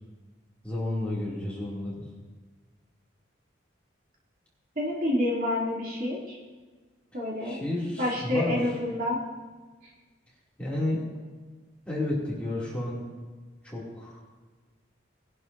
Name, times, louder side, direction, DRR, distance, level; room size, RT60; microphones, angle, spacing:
voice 1, 0.6-2.0 7.4-8.6 10.6-11.0 11.9-13.0 13.6-14.2, left 1 dB, 5° left, -7 dB, 2.7 m, -31 dB
voice 2, 4.8-6.4 7.1-7.6 8.0-9.2, left 1 dB, 45° right, -5 dB, 2.9 m, -28 dB
20.0 x 11.0 x 2.7 m, 1.4 s
head